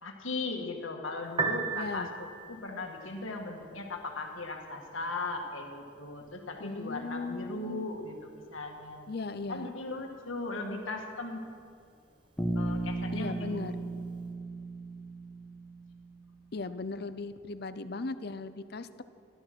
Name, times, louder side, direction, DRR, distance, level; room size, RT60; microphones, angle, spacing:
voice 1, 0.0-9.1 9.5-11.4 12.6-13.6, left 3 dB, 90° left, 2 dB, 1.8 m, -38 dB
Piano, 1.2-14.3, right 4 dB, 25° right, 1.0 m, -43 dB
voice 2, 1.7-2.1 6.6-7.9 9.1-9.7 13.1-13.7 16.5-19.0, left 3 dB, 55° left, 12 dB, 0.6 m, -37 dB
Bass guitar, 12.4-16.4, right 2 dB, 5° left, 1.1 m, -36 dB
14.0 x 12.0 x 6.1 m, 2.4 s
head